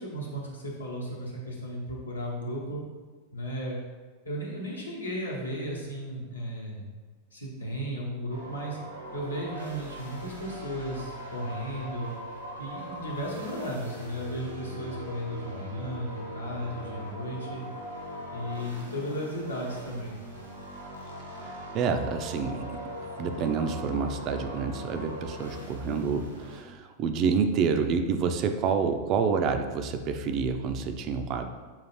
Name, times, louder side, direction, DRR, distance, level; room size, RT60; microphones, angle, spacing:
voice 1, 0.0-2.8 3.3-3.8 4.2-6.9 7.3-8.8 9.1-12.1 12.6-17.6 18.3-20.2, equal, 80° left, -3 dB, 0.9 m, -35 dB
sound 1, 8.3-26.6, equal, 85° right, 0.8 m, -41 dB
voice 2, 21.4-22.8 23.2-31.5, right 5 dB, 35° right, 6 dB, 0.3 m, -28 dB
5.5 x 2.4 x 3.1 m, 1.4 s
figure-of-eight pair, 90°, 0 cm